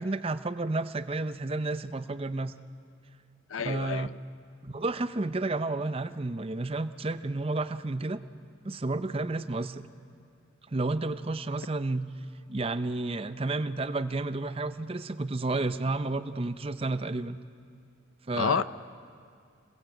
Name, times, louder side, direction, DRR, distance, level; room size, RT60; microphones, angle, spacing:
voice 1, 0.0-2.5 3.6-4.1 4.6-8.2 8.6-9.9 10.7-12.1 12.5-17.4 18.3-18.6, right 2 dB, 30° right, 0.6 m, -31 dB
voice 2, 3.5-4.2 18.3-18.6, left 6 dB, 85° left, 0.6 m, -29 dB
27.0 x 21.0 x 7.9 m
head